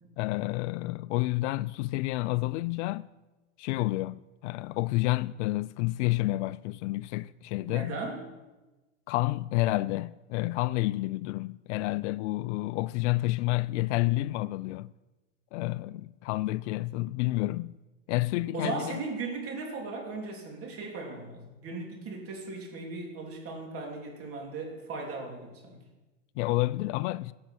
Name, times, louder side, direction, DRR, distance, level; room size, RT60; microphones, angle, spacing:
voice 1, 0.2-3.1 3.6-8.0 9.1-14.9 15.5-17.8 18.1-19.0 26.4-27.3, left 19 dB, 65° left, 0.5 m, -29 dB
voice 2, 7.7-8.2 18.5-25.8, right 3 dB, 35° right, 3.3 m, -37 dB
15.5 x 6.6 x 6.0 m
supercardioid pair, 120°, 39 cm